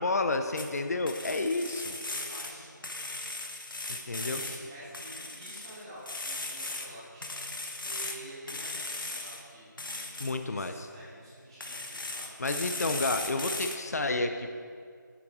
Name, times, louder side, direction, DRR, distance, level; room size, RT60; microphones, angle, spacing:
voice 1, 0.0-2.0 3.9-4.4 10.2-10.9 12.4-14.5, left 2 dB, 50° left, 7 dB, 0.5 m, -30 dB
sound 1, 0.6-0.8 1.1-2.5 2.8-4.6 4.9-6.9 7.2-8.2 8.5-9.4 9.8-10.3 11.6-13.8, left 2 dB, 85° left, 1.0 m, -37 dB
voice 2, 2.1-2.8 4.2-9.8 10.4-12.4, right 1 dB, 15° right, -10 dB, 1.6 m, -48 dB
10.5 x 5.7 x 3.6 m, 2.1 s
figure-of-eight pair, 175°, 11 cm